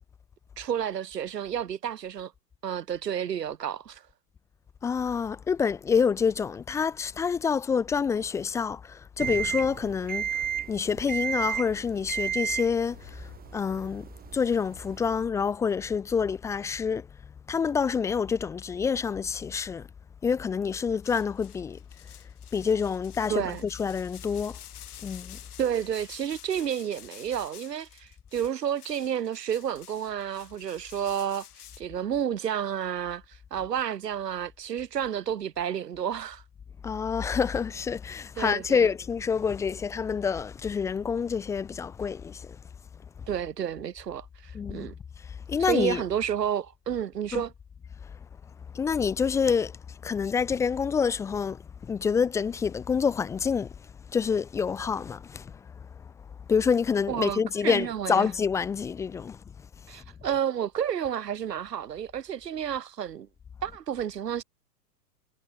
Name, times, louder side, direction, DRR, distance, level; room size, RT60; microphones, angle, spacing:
voice 1, 0.6-2.3 2.6-4.0 23.3-23.6 25.6-31.5 31.8-36.4 38.4-38.9 43.3-44.9 45.6-47.5 57.1-58.3 59.9-63.3 63.6-64.4, right 9 dB, 75° right, 4.3 m, -31 dB
voice 2, 4.8-17.1 17.5-19.9 20.2-21.8 22.5-24.6 25.0-25.4 36.8-42.6 44.5-44.9 45.2-46.0 47.3-47.5 48.0-48.1 48.7-56.1 56.5-59.4 59.9-60.0, left 6 dB, 5° left, 0.5 m, -27 dB
sound 1, 9.2-15.3, right 9 dB, 20° right, 5.1 m, -34 dB
sound 2, 21.0-31.8, left 11 dB, 65° left, 6.2 m, -50 dB
hypercardioid pair, 130°, 49 cm